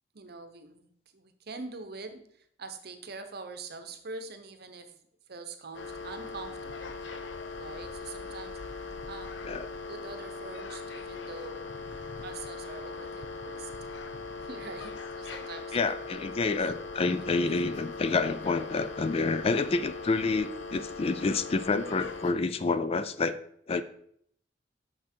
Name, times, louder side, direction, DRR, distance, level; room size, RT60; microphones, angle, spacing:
voice 1, 0.1-2.2 2.6-5.0 5.3-7.0 7.6-8.6 9.1-11.7 12.2-13.7 14.4-16.5 17.0-17.2, right 3 dB, 60° right, 8 dB, 0.8 m, -44 dB
sound 1, 5.7-22.3, left 4 dB, 80° left, 0.7 m, -40 dB
voice 2, 15.7-23.4 23.7-23.8, left 3 dB, 35° left, 12 dB, 0.4 m, -28 dB
6.4 x 6.1 x 4.4 m, 0.66 s
head